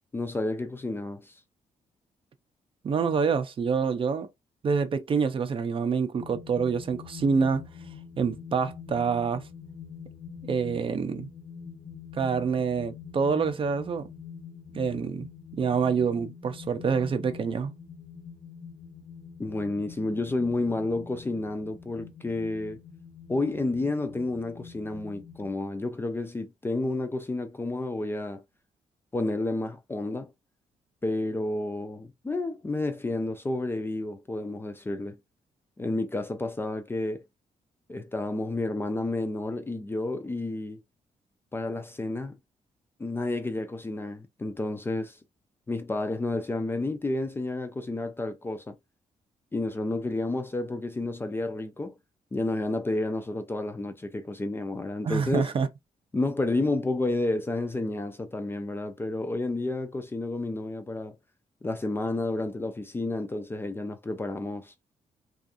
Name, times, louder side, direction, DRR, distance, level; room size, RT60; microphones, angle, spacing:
voice 1, 0.1-1.3 19.4-22.8 23.3-28.4 29.1-30.3 31.0-35.2 35.8-37.2 37.9-40.8 41.5-42.4 43.0-45.2 45.7-48.8 49.5-52.0 52.3-55.5 56.1-61.2 61.6-64.7, left 2 dB, 15° left, 0.4 m, -30 dB
voice 2, 2.8-4.3 4.6-7.6 8.2-9.4 10.5-11.3 12.1-14.1 14.7-15.3 15.5-17.7 55.0-55.7, right 5 dB, 40° right, 0.5 m, -26 dB
sound 1, 6.2-25.6, left 7 dB, 75° left, 1.0 m, -45 dB
2.5 x 2.4 x 2.5 m
cardioid pair, 120°, 13 cm